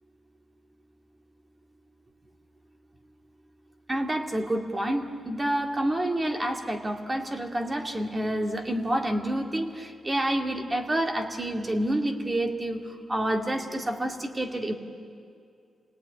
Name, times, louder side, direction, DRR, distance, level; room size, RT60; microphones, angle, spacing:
voice 1, 3.9-12.8 13.1-14.7, right 1 dB, 25° right, 4 dB, 2.3 m, -28 dB
28.5 x 18.5 x 9.6 m, 2.3 s
cardioid pair, 95°, 0 cm